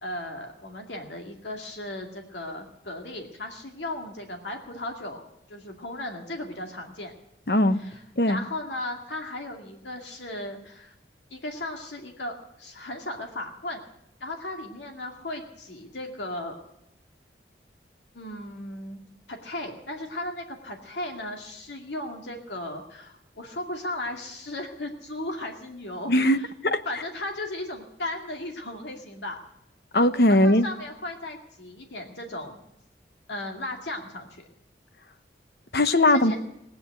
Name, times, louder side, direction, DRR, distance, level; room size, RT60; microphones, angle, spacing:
voice 1, 0.0-7.1 7.8-10.9 11.3-13.8 14.2-16.6 18.1-19.0 19.3-26.5 26.9-29.4 30.3-32.6 33.3-34.4 36.1-36.4, left 1 dB, 85° left, 3 dB, 2.3 m, -36 dB
voice 2, 7.5-7.8 8.2-8.4 26.1-26.8 29.9-30.6 35.7-36.4, left 1 dB, 60° left, 11 dB, 1.0 m, -20 dB
19.0 x 9.4 x 8.2 m, 0.81 s
head